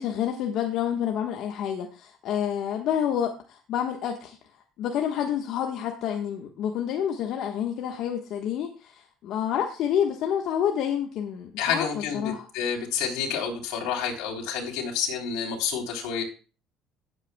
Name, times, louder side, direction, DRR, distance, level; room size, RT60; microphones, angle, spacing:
voice 1, 0.0-4.4 4.8-12.5, left 9 dB, 65° left, 2 dB, 1.3 m, -28 dB
voice 2, 11.6-16.2, left 7 dB, 85° left, -1 dB, 3.4 m, -29 dB
18.0 x 8.1 x 2.2 m, 0.34 s
cardioid pair, 115°, 0 cm